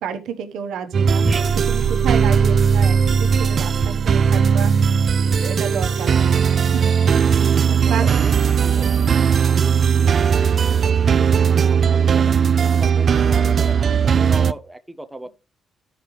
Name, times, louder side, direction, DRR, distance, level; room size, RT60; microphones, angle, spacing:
voice 1, 0.0-4.7 5.2-6.9 7.3-7.5 7.8-8.1, right 7 dB, 80° right, 1.1 m, -31 dB
sound 1, 0.9-14.5, right 7 dB, 50° right, 0.4 m, -18 dB
sound 2, 1.2-5.9, right 7 dB, 25° right, 1.7 m, -27 dB
voice 2, 7.2-9.7 10.1-15.3, right 1 dB, 5° right, 0.7 m, -36 dB
13.0 x 5.1 x 3.1 m
cardioid pair, 90°, 0 cm